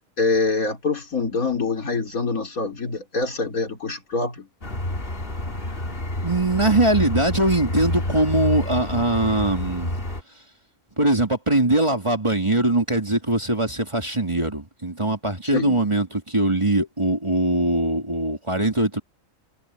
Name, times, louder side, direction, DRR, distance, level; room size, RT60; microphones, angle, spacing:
voice 1, 0.2-4.5 15.5-15.8, left 4 dB, 90° left, 4.0 m, -25 dB
sound 1, 4.6-10.2, left 1 dB, 40° left, 3.0 m, -28 dB
voice 2, 6.2-10.0 11.0-19.0, right 2 dB, 20° right, 2.8 m, -21 dB
omnidirectional pair, 1.4 m